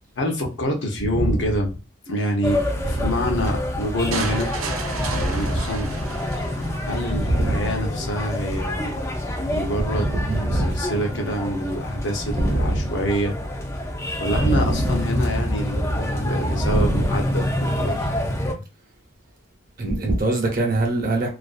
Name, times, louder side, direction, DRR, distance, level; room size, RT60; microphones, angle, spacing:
voice 1, 0.2-1.7 2.1-4.5 5.2-5.9 6.8-8.9 9.5-10.1 10.4-13.3 14.2-18.1, equal, 55° left, 0.7 m, -26 dB
sound 1, 2.4-18.5, left 1 dB, 15° left, 0.4 m, -27 dB
sound 2, 4.1-7.1, right 4 dB, 85° right, 0.5 m, -32 dB
voice 2, 7.3-7.6 9.9-10.7 12.4-12.7 14.4-14.8 16.5-17.0 19.8-21.3, right 1 dB, 40° right, 0.7 m, -22 dB
2.4 x 2.3 x 2.4 m
head